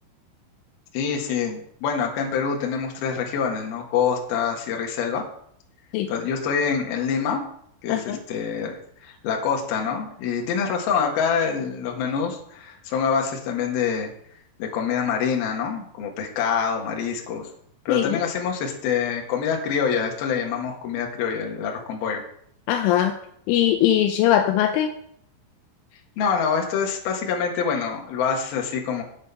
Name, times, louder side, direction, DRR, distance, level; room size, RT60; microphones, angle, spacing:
voice 1, 0.9-5.2 6.1-7.4 7.8-8.8 9.0-14.1 14.6-17.5 17.9-22.2 26.2-29.0, left 6 dB, 60° left, 1 dB, 3.0 m, -25 dB
voice 2, 7.9-8.2 17.9-18.2 22.7-23.1 23.5-24.9, left 11 dB, 80° left, 5 dB, 3.1 m, -20 dB
9.0 x 8.7 x 5.6 m, 0.68 s
omnidirectional pair, 5.8 m